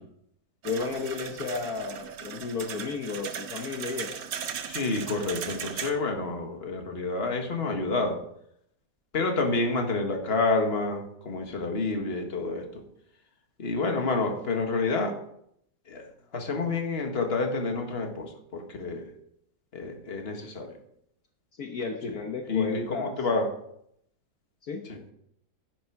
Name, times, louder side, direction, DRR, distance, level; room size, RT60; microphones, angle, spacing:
voice 1, 0.6-4.2 21.6-23.2 24.6-24.9, left 4 dB, 60° left, 3 dB, 1.5 m, -33 dB
sound 1, 0.6-5.9, right 8 dB, 90° right, 1.6 m, -37 dB
voice 2, 4.7-8.2 9.1-12.6 13.6-15.2 15.9-16.0 16.3-19.1 19.7-20.7 22.1-22.2 22.5-23.5 24.9-25.0, left 3 dB, 35° left, 3 dB, 1.8 m, -28 dB
11.0 x 10.0 x 4.6 m, 0.73 s
omnidirectional pair, 1.8 m